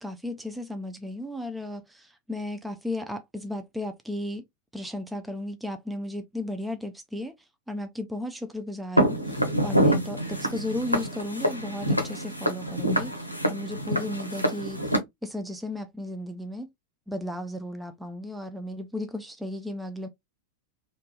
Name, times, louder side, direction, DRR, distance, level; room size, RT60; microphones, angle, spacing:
voice 1, 0.0-4.4 4.7-7.3 7.7-14.9 15.2-16.7 17.1-20.1, left 1 dB, 5° right, 0.4 m, -35 dB
Walk footsteps, 9.0-15.0, equal, 90° left, 0.7 m, -26 dB
3.2 x 2.5 x 2.9 m
figure-of-eight pair, 90°, 0 cm